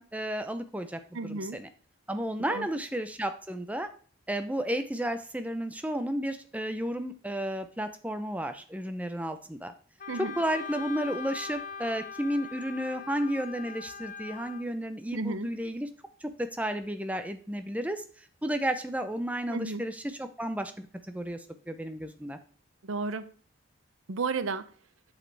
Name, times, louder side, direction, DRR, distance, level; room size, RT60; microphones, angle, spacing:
voice 1, 0.0-1.7 2.1-3.9 4.3-9.7 10.2-15.9 16.2-22.4, right 1 dB, 5° right, 0.6 m, -33 dB
voice 2, 1.1-1.6 2.5-2.7 10.1-10.3 15.1-15.5 19.5-19.8 22.8-23.3 24.1-24.7, right 4 dB, 90° right, 0.7 m, -33 dB
Wind instrument woodwind instrument, 10.0-14.6, left 6 dB, 40° left, 0.7 m, -41 dB
7.7 x 6.4 x 3.4 m
head